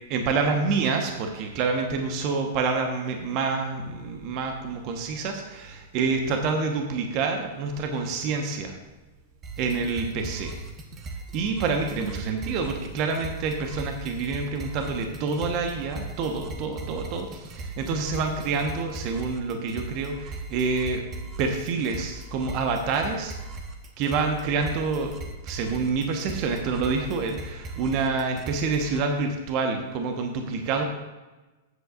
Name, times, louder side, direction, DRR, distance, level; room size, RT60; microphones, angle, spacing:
voice 1, 0.1-8.8 9.6-10.5 11.3-21.1 21.4-23.5 24.0-25.1 25.4-30.8, right 4 dB, 45° right, 4 dB, 1.3 m, -27 dB
sound 1, 9.4-29.0, right 2 dB, 30° right, 1.4 m, -39 dB
14.0 x 8.4 x 2.6 m, 1.1 s
hypercardioid pair, 105°, 0 cm